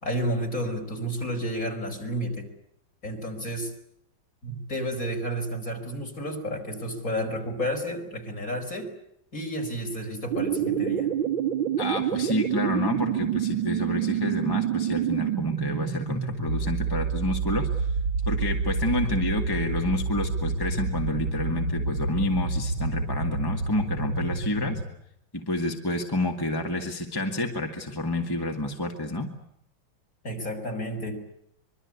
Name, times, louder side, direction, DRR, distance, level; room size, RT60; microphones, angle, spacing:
voice 1, 0.0-2.5 3.0-3.7 4.4-8.9 9.3-11.1 30.2-31.2, equal, 45° left, 2 dB, 5.3 m, -31 dB
sound 1, 10.3-24.8, right 6 dB, 80° right, 2.7 m, -28 dB
voice 2, 11.8-17.9 18.3-24.8 25.3-29.3, left 1 dB, 10° left, 2 dB, 2.1 m, -29 dB
25.0 x 23.5 x 8.4 m, 0.76 s
omnidirectional pair, 2.1 m